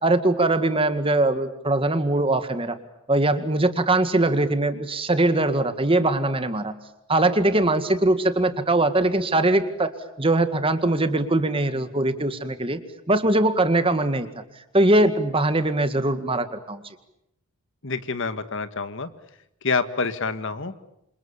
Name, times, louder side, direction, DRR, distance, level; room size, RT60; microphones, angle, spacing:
voice 1, 0.0-2.8 3.1-6.7 7.1-9.9 10.2-12.8 13.1-14.3 14.7-16.8, right 2 dB, 25° right, 10 dB, 2.0 m, -21 dB
voice 2, 17.8-19.1 19.6-20.7, left 4 dB, 60° left, 11 dB, 1.7 m, -27 dB
29.0 x 27.0 x 7.3 m, 0.82 s
head